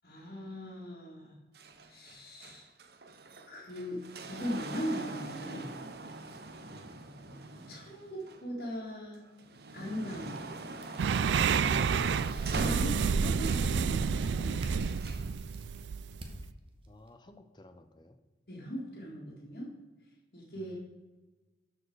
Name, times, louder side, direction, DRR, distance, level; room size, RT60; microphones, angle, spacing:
voice 1, 0.0-1.3 1.9-2.7 3.5-5.7 7.3-9.3 9.7-10.4 12.5-14.6 18.5-19.7 20.3-20.8, equal, 55° left, -7 dB, 2.2 m, -39 dB
sound 1, 1.5-8.7 9.2-13.8 14.8-15.3 16.2-16.3, right 3 dB, 65° right, 0.8 m, -43 dB
sound 2, 11.0-16.5, right 6 dB, 90° right, 0.4 m, -29 dB
sound 3, 14.8-17.1, right 1 dB, 30° right, 1.1 m, -54 dB
voice 2, 16.9-18.2 20.6-20.8, left 1 dB, 25° left, 8 dB, 0.6 m, -55 dB
12.5 x 4.9 x 4.7 m, 1.2 s
head